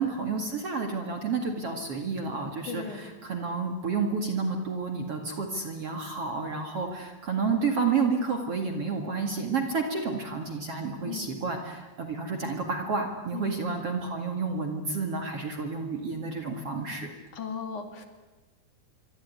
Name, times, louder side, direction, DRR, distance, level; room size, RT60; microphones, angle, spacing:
voice 1, 0.0-17.1, right 4 dB, 45° right, 4 dB, 2.6 m, -30 dB
voice 2, 2.7-3.0 11.1-11.3 13.3-13.8 17.3-18.1, left 6 dB, 50° left, 6 dB, 3.6 m, -37 dB
26.0 x 24.0 x 9.6 m, 1.2 s
omnidirectional pair, 4.7 m